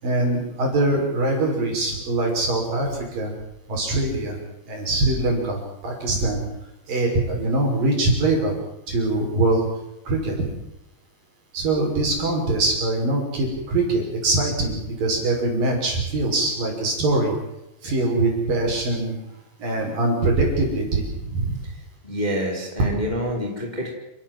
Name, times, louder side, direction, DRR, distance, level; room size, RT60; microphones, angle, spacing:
voice 1, 0.0-3.3 3.7-4.4 4.7-6.4 6.9-8.5 8.9-9.7 10.1-10.4 11.5-17.3 17.8-19.1 19.6-21.6, right 2 dB, 50° right, 1 dB, 7.5 m, -23 dB
voice 2, 21.7-23.9, equal, 10° left, 0 dB, 4.2 m, -27 dB
29.0 x 17.5 x 7.8 m, 0.87 s
omnidirectional pair, 5.1 m